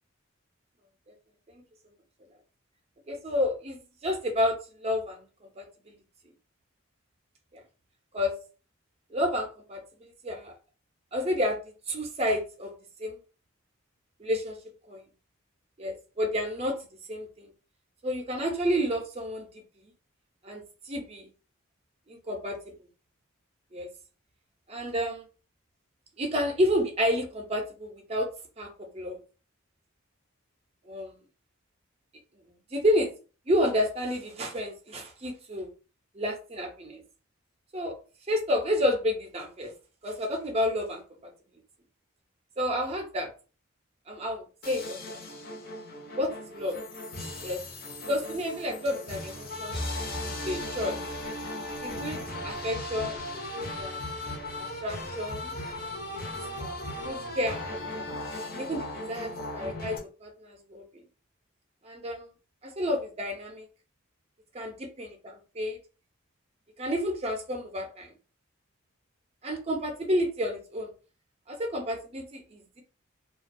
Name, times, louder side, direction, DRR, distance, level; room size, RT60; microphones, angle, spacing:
voice 1, 3.1-5.3 5.6-5.9 7.5-7.6 8.1-8.3 9.1-10.5 11.1-12.7 13.0-13.2 14.2-14.6 14.9-15.0 15.8-16.8 17.1-17.5 18.0-19.6 20.4-21.3 22.1-22.6 23.7-23.9 24.7-25.2 26.2-28.3 28.6-29.2 30.9-31.2 32.7-33.1 33.5-35.7 36.1-37.0 37.7-37.9 38.3-39.7 40.0-41.3 42.6-43.3 44.1-45.0 46.2-46.8 47.4-47.6 48.1-49.8 50.3-51.0 51.8-53.2 53.5-54.0 54.6-55.5 56.1-56.2 56.6-56.8 57.0-58.2 58.5-61.0 61.8-62.3 62.6-63.7 64.5-65.8 66.8-68.1 69.4-70.9 71.5-72.8, equal, 30° right, 3 dB, 0.5 m, -30 dB
sound 1, 44.6-60.0, left 1 dB, 45° left, 0.6 m, -37 dB
2.3 x 2.1 x 2.5 m, 0.35 s
head